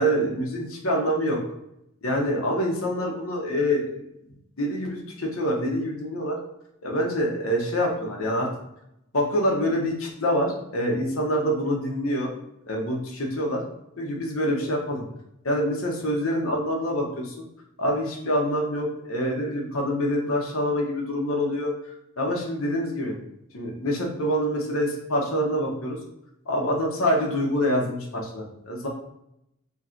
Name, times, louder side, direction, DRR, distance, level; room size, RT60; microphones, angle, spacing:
voice 1, 0.0-1.4 2.0-3.8 4.6-6.4 6.8-8.5 9.1-12.3 12.7-13.6 14.0-15.0 15.4-17.4 17.8-21.7 22.2-23.2 23.5-26.0 26.5-28.9, equal, 75° left, 0 dB, 1.0 m, -26 dB
3.1 x 2.6 x 4.4 m, 0.81 s
head